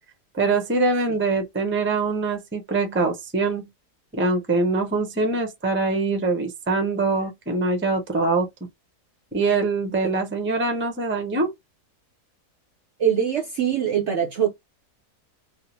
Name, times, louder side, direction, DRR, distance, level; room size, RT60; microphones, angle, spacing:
voice 1, 0.3-3.7 4.1-8.5 9.3-11.5, right 3 dB, 10° right, 0.6 m, -23 dB
voice 2, 13.0-14.5, right 9 dB, 55° right, 0.8 m, -23 dB
3.7 x 2.1 x 3.0 m
omnidirectional pair, 1.7 m